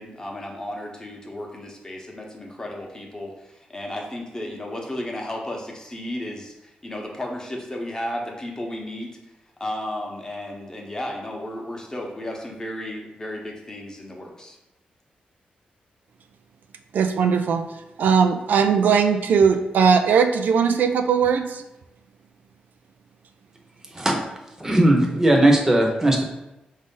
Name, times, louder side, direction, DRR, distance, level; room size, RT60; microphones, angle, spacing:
voice 1, 0.0-9.1 9.6-14.6, left 1 dB, 20° left, 0 dB, 0.9 m, -34 dB
voice 2, 16.9-17.6 18.0-21.6, right 6 dB, 80° right, 6 dB, 0.4 m, -19 dB
voice 3, 24.6-26.2, right 1 dB, 15° right, 1 dB, 0.9 m, -18 dB
4.9 x 2.7 x 3.7 m, 0.96 s
cardioid pair, 90°, 3 cm